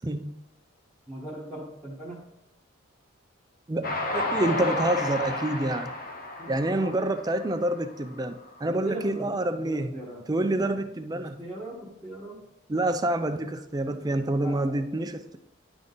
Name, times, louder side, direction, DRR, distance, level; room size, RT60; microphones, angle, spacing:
voice 1, 1.1-2.2 6.4-6.9 8.6-10.2 10.5-10.8 11.1-12.4 14.4-14.9, right 1 dB, 5° left, -9 dB, 1.3 m, -39 dB
voice 2, 3.7-5.9 6.5-10.0 10.3-11.4 12.7-15.4, right 1 dB, 20° right, 8 dB, 0.4 m, -27 dB
Train, 3.8-8.2, left 2 dB, 45° left, 0.9 m, -32 dB
10.5 x 3.7 x 3.9 m, 0.89 s
head